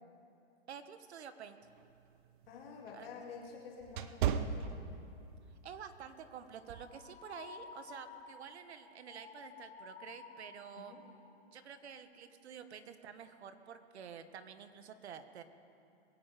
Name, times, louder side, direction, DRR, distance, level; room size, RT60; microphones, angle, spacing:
voice 1, 0.7-1.6 2.9-3.1 5.6-10.9 11.5-15.4, right 7 dB, 85° right, 10 dB, 1.2 m, -49 dB
sound 1, 1.7-5.4 5.8-6.1 6.7-7.0, right 8 dB, 50° right, 0.8 m, -37 dB
voice 2, 2.5-4.8 10.8-11.0, left 5 dB, 65° left, -1 dB, 2.5 m, -49 dB
sound 2, 6.7-11.3 11.7-12.0, left 5 dB, 85° left, 1.6 m, -53 dB
22.0 x 9.2 x 5.0 m, 2.6 s
hypercardioid pair, 145°, 32 cm